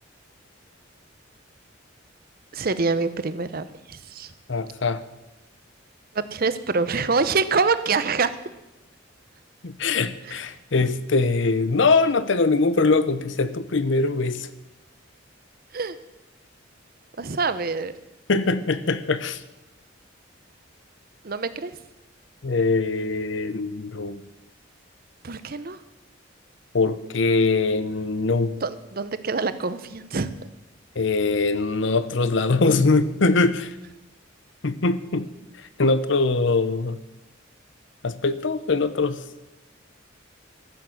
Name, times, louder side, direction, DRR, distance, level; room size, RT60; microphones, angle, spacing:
voice 1, 2.5-4.3 6.1-8.3 15.7-16.0 17.2-17.9 21.2-21.7 25.2-25.8 28.6-30.3, right 4 dB, 50° right, 13 dB, 0.7 m, -25 dB
voice 2, 4.5-5.0 9.6-14.5 18.3-19.4 22.4-24.2 26.7-28.6 31.0-33.8 34.6-35.3 35.6-37.0 38.0-39.2, left 3 dB, 65° left, 14 dB, 0.7 m, -22 dB
14.0 x 7.2 x 7.8 m, 0.99 s
head